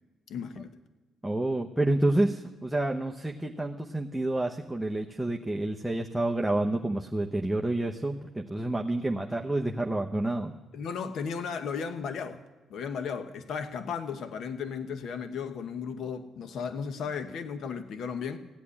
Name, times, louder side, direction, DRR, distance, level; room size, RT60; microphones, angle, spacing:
voice 1, 0.3-0.7 10.7-12.4 12.7-18.4, left 6 dB, 70° left, 9 dB, 1.0 m, -35 dB
voice 2, 1.2-10.5, right 1 dB, 5° right, 0 dB, 0.9 m, -29 dB
16.0 x 8.4 x 9.8 m, 1.3 s
cardioid pair, 90°, 0 cm